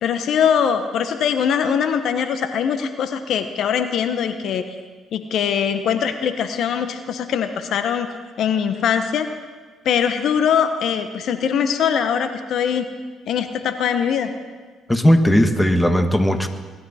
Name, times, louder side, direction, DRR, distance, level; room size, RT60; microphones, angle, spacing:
voice 1, 0.0-4.6 5.1-8.1 8.4-9.3 9.8-12.9 13.3-14.3, left 7 dB, 65° left, 8 dB, 1.0 m, -22 dB
voice 2, 14.9-16.5, equal, 10° left, 7 dB, 1.4 m, -16 dB
21.0 x 12.5 x 4.3 m, 1.4 s
supercardioid pair, 70°, 0 cm